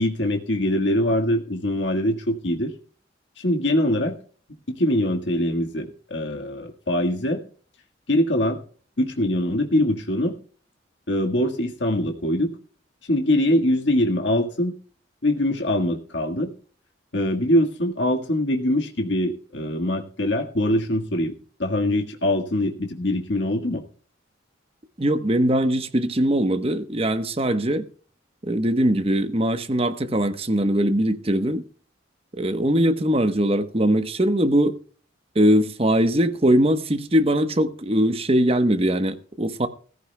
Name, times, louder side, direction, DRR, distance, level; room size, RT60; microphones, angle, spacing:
voice 1, 0.0-2.7 3.4-4.1 4.8-7.4 8.1-8.6 9.0-10.3 11.1-12.5 13.1-14.8 15.2-16.5 17.1-21.3 21.6-23.8, left 1 dB, 65° left, 1.6 m, -23 dB
voice 2, 25.0-27.8 28.4-31.6 32.4-34.7 35.3-39.7, right 1 dB, 30° right, 1.0 m, -21 dB
16.5 x 15.0 x 2.2 m
head